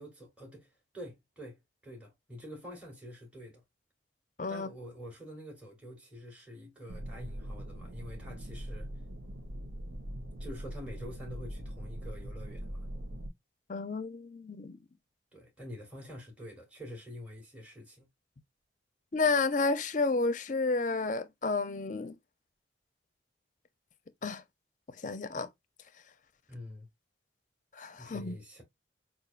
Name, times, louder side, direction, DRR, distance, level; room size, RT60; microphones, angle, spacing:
voice 1, 0.0-3.6 4.5-8.9 10.4-12.9 15.3-18.1 26.5-26.9 28.0-28.6, equal, 5° right, 1.0 m, -46 dB
voice 2, 4.4-4.7 13.7-14.8 19.1-22.2 24.2-24.4 25.0-25.5 27.8-28.4, left 3 dB, 40° left, 0.5 m, -31 dB
sound 1, 6.9-13.3, equal, 80° right, 0.9 m, -41 dB
5.4 x 2.4 x 2.4 m
head